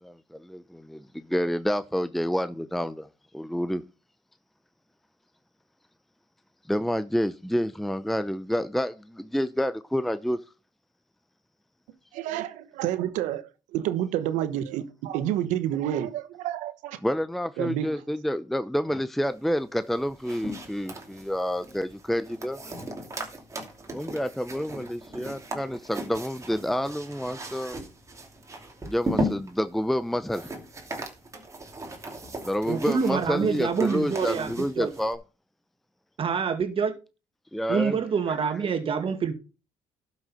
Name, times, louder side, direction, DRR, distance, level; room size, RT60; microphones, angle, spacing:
voice 1, 0.0-3.1 3.3-3.8 6.7-10.4 17.0-22.6 23.9-27.8 28.9-30.5 32.4-35.2 37.5-38.0, equal, ahead, 0.6 m, -28 dB
voice 2, 12.1-13.4 13.7-17.0 17.6-17.9, right 11 dB, 85° right, 1.1 m, -29 dB
sound 1, 19.8-35.1, equal, 25° right, 2.7 m, -37 dB
voice 3, 32.6-34.5 34.8-34.9 36.2-36.9 37.7-39.3, right 6 dB, 50° right, 2.1 m, -26 dB
12.0 x 6.3 x 4.3 m
supercardioid pair, 80°, 12 cm